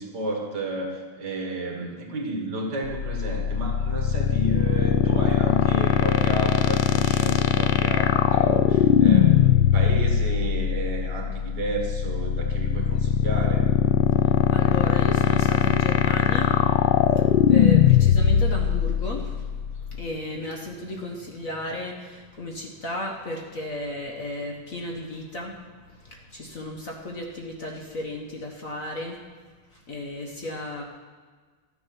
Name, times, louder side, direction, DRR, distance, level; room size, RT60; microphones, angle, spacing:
voice 1, 0.0-13.7, right 2 dB, 50° right, 1 dB, 2.1 m, -32 dB
sound 1, 2.8-20.0, left 10 dB, 70° left, 1.2 m, -20 dB
voice 2, 14.2-16.7 17.1-29.2 29.7-30.8, left 1 dB, 45° left, 0 dB, 1.4 m, -34 dB
13.0 x 10.0 x 5.8 m, 1.5 s
omnidirectional pair, 2.3 m